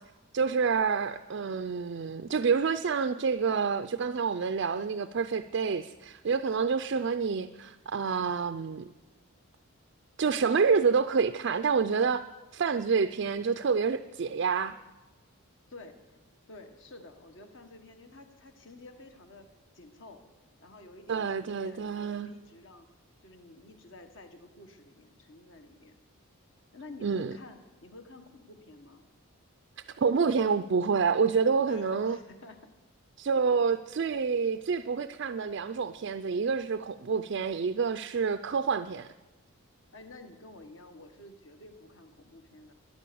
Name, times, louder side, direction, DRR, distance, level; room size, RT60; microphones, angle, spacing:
voice 1, 0.3-8.9 10.2-12.2 12.5-14.8 21.1-22.3 27.0-27.3 30.0-32.2 33.2-39.1, right 5 dB, 55° right, 0.4 m, -28 dB
voice 2, 16.5-19.5 19.7-20.2 20.6-22.9 23.2-26.0 26.7-29.1 31.6-32.7 39.9-42.7, left 2 dB, 55° left, 1.4 m, -50 dB
13.0 x 10.5 x 6.9 m
head